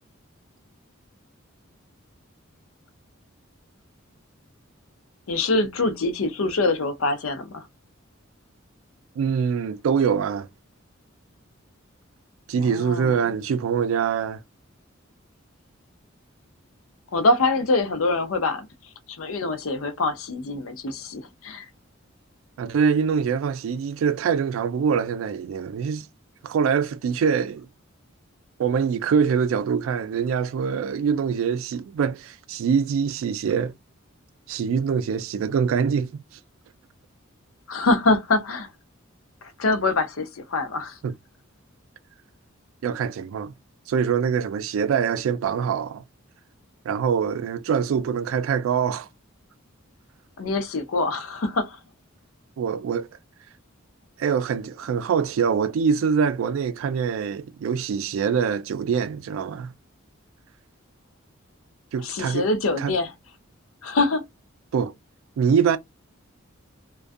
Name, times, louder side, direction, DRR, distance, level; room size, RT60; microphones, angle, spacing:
voice 1, 5.3-7.7 12.6-13.3 17.1-18.7 19.1-21.7 37.7-38.7 39.6-41.0 50.4-51.8 62.0-63.1 63.8-64.2, left 2 dB, 90° left, 0.6 m, -24 dB
voice 2, 9.2-10.5 12.5-14.4 22.6-26.1 26.4-27.7 28.6-33.7 34.5-36.2 41.0-41.1 42.8-43.5 43.9-46.0 46.8-49.1 52.6-53.1 54.2-59.7 61.9-62.5 62.8-62.9 64.7-64.9 65.4-65.8, right 6 dB, 75° right, 0.3 m, -24 dB
2.3 x 2.2 x 2.5 m
head